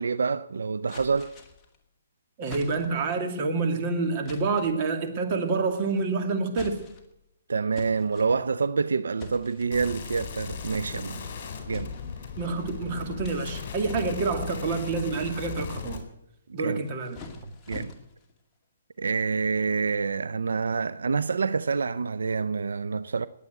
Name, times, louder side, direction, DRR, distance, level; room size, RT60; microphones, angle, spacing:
voice 1, 0.0-1.4 7.5-11.3 11.7-11.9 16.5-16.8 17.7-17.9 19.0-23.3, right 5 dB, 90° right, 0.6 m, -27 dB
sound 1, 0.9-1.8 2.5-3.1 4.3-4.8 5.7-6.1 6.5-7.2 7.8-8.7 9.2-9.8 10.2-10.6 11.7-12.6 13.2-14.4 14.9-16.0 16.7-18.3, left 3 dB, 15° left, 2.3 m, -45 dB
voice 2, 2.4-6.8 12.4-16.0 16.5-17.2, right 4 dB, 35° right, 2.4 m, -28 dB
sound 2, 9.7-16.0, left 6 dB, 45° left, 4.2 m, -37 dB
20.0 x 8.4 x 8.0 m
hypercardioid pair, 155°, 0 cm